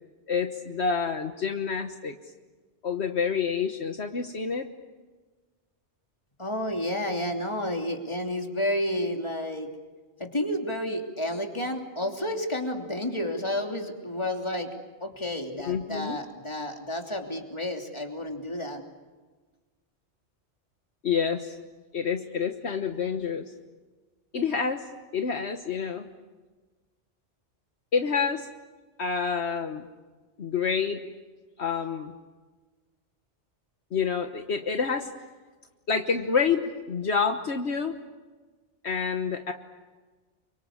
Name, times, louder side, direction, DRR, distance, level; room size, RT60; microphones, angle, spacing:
voice 1, 0.3-2.2 2.8-4.7 15.6-16.2 21.0-21.6 21.9-23.5 24.3-26.1 27.9-28.5 29.0-29.8 30.4-31.1 31.6-32.1 33.9-35.1 35.9-38.0 38.8-39.5, left 6 dB, 65° left, 6 dB, 1.5 m, -28 dB
voice 2, 6.4-9.7 10.2-14.7 15.0-18.8, left 1 dB, 25° left, 2 dB, 3.1 m, -31 dB
29.0 x 24.5 x 7.3 m, 1.3 s
omnidirectional pair, 1.2 m